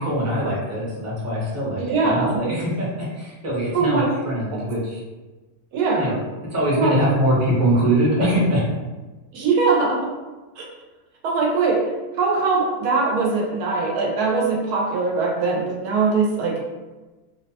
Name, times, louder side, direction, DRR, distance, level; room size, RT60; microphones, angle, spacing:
voice 1, 0.0-5.0 6.0-6.2 6.5-8.6, right 1 dB, 15° right, -7 dB, 0.5 m, -22 dB
voice 2, 1.8-2.4 3.7-4.1 4.5-4.6 5.7-6.0 6.8-7.0 9.3-10.0 10.6-10.7 11.2-11.8 12.2-16.6, right 4 dB, 90° right, -1 dB, 1.2 m, -21 dB
2.9 x 2.1 x 2.7 m, 1.2 s
omnidirectional pair, 1.6 m